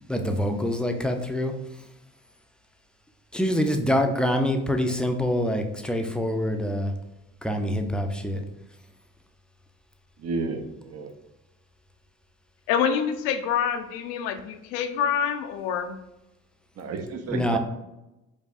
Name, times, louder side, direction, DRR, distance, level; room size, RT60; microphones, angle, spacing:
voice 1, 0.1-1.5 3.3-6.9 7.4-8.4 17.3-17.6, equal, 5° left, 5 dB, 0.4 m, -25 dB
voice 2, 10.2-11.1 16.8-17.6, right 4 dB, 50° right, 6 dB, 0.6 m, -31 dB
voice 3, 12.7-16.0, left 8 dB, 80° left, 8 dB, 0.5 m, -26 dB
4.7 x 2.5 x 2.4 m, 0.94 s
hypercardioid pair, 65°, 33 cm